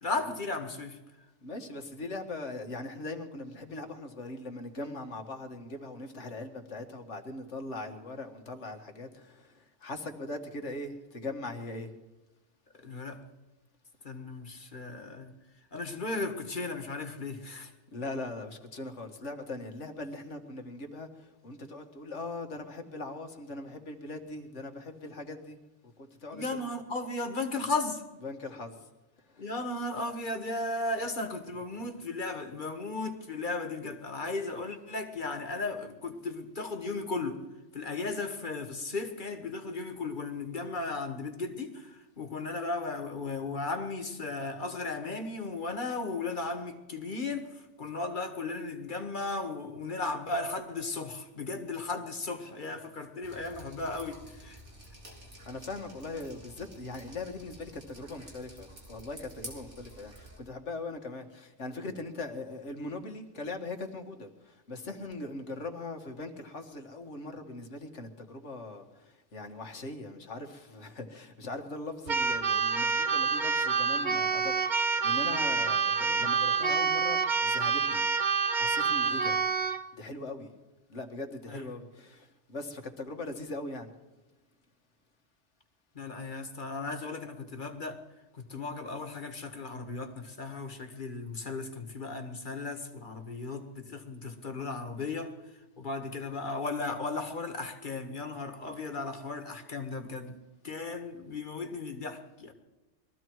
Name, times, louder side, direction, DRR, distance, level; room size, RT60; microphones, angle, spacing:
voice 1, 0.0-1.0 12.7-13.2 14.0-15.3 15.7-17.7 26.3-28.0 29.4-37.4 37.7-54.6 76.1-76.3 81.5-81.8 86.0-88.0 88.3-95.3 95.8-100.4 100.6-102.5, left 3 dB, 45° left, 6 dB, 1.8 m, -36 dB
voice 2, 1.4-11.9 17.6-25.6 26.0-26.6 28.2-28.9 29.3-29.5 31.2-31.6 52.4-52.7 55.4-78.1 78.5-79.5 79.9-80.5 80.9-83.9, left 2 dB, 80° left, 4 dB, 2.0 m, -40 dB
Drip, 53.2-60.4, right 1 dB, 75° right, 4.3 m, -50 dB
Keyboard (musical), 72.1-79.8, right 5 dB, 45° right, 0.9 m, -27 dB
21.5 x 14.5 x 4.7 m, 1.1 s
omnidirectional pair, 1.2 m